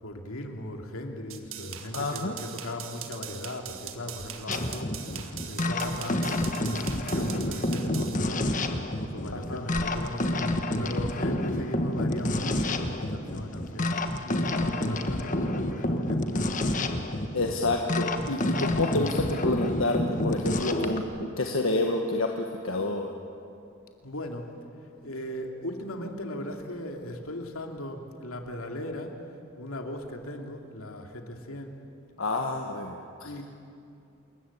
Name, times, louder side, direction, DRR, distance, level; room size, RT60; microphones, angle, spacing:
voice 1, 0.0-5.2 5.4-8.6 9.0-14.0 14.2-16.9 24.0-24.5 25.0-29.2 29.6-31.8 33.2-33.4, left 1 dB, 80° left, 3 dB, 2.7 m, -38 dB
sound 1, 1.3-8.1, right 10 dB, 70° right, 1.8 m, -41 dB
voice 2, 1.9-2.4 9.3-9.6 17.3-23.1 32.2-33.4, left 2 dB, 65° left, 2 dB, 1.5 m, -29 dB
sound 2, 4.5-21.0, left 1 dB, 35° left, 1.5 m, -29 dB
28.0 x 21.5 x 8.6 m, 2.7 s
head